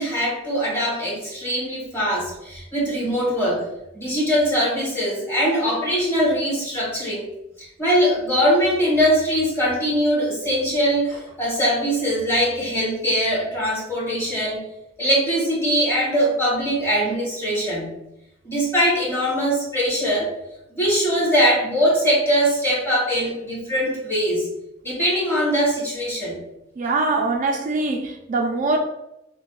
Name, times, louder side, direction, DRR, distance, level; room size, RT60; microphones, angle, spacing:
voice 1, 0.0-3.7 3.9-7.2 7.6-14.6 15.0-17.9 18.4-20.3 20.7-24.5 24.8-26.4, equal, 15° left, 1.4 m, -22 dB
voice 2, 26.8-28.8, right 3 dB, 45° right, 0.3 m, -23 dB
5.7 x 2.2 x 2.4 m
head